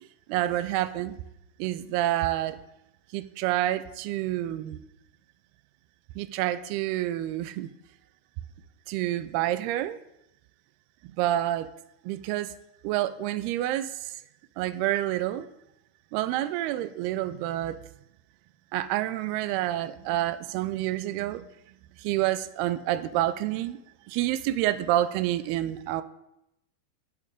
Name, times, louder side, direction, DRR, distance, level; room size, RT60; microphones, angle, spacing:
voice 1, 0.3-1.1 1.6-2.6 3.1-4.8 6.2-7.7 8.9-10.0 11.2-11.7 12.1-12.5 12.8-13.9 14.6-15.4 16.1-17.8 18.7-21.4 22.0-23.8 24.1-26.0, right 14 dB, 85° right, 13 dB, 2.5 m, -28 dB
11.0 x 5.5 x 8.2 m, 0.86 s
omnidirectional pair, 4.6 m